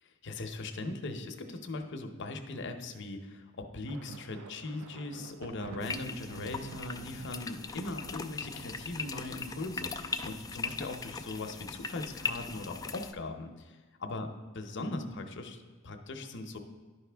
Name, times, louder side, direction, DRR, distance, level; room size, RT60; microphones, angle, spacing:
voice 1, 0.0-13.7 14.0-14.3 14.5-16.6, left 2 dB, 60° left, 5 dB, 0.7 m, -39 dB
sound 1, 3.9-11.2, right 8 dB, 90° right, 0.3 m, -50 dB
sound 2, 5.8-13.1, left 4 dB, 15° left, 0.3 m, -39 dB
11.0 x 5.0 x 3.4 m, 1.4 s
head